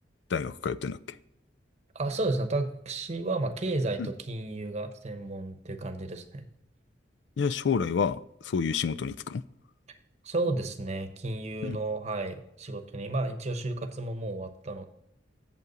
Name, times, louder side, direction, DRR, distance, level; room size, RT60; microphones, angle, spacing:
voice 1, 0.3-1.0 4.0-4.1 7.4-8.2 8.4-9.4 11.6-11.8, left 6 dB, 75° left, 0.4 m, -28 dB
voice 2, 1.9-6.5 9.9-10.0 10.2-14.8, right 2 dB, 40° right, 0.9 m, -32 dB
8.2 x 7.3 x 4.0 m
head